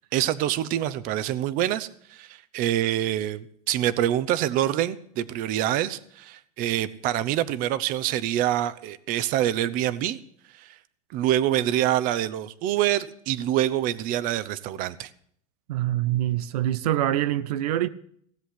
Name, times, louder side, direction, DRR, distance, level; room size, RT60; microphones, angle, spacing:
voice 1, 0.1-10.2 10.5-10.8 11.1-15.1, right 12 dB, 45° right, 0.8 m, -26 dB
voice 2, 15.7-17.9, right 13 dB, 85° right, 0.7 m, -25 dB
16.5 x 7.8 x 8.5 m
supercardioid pair, 135°, 19 cm